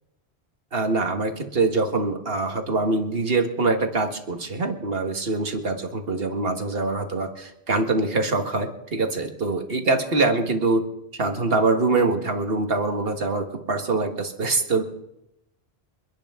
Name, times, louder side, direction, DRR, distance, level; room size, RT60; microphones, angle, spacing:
voice 1, 0.7-10.8 11.2-14.8, right 3 dB, 65° right, 5 dB, 1.8 m, -24 dB
28.5 x 10.0 x 3.7 m, 0.85 s
omnidirectional pair, 1.1 m